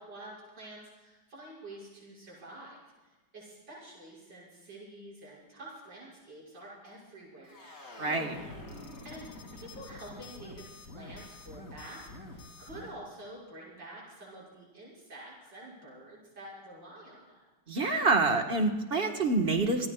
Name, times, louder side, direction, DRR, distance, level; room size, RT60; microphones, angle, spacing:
voice 1, 0.0-7.9 9.0-10.7 10.9-17.4, right 1 dB, 90° right, -6 dB, 7.2 m, -48 dB
sound 1, 7.4-13.0, left 2 dB, 50° left, 3.3 m, -47 dB
voice 2, 8.0-8.4 17.7-19.9, right 3 dB, 35° right, 4 dB, 1.8 m, -27 dB
28.5 x 18.5 x 2.4 m, 1.2 s
omnidirectional pair, 1.9 m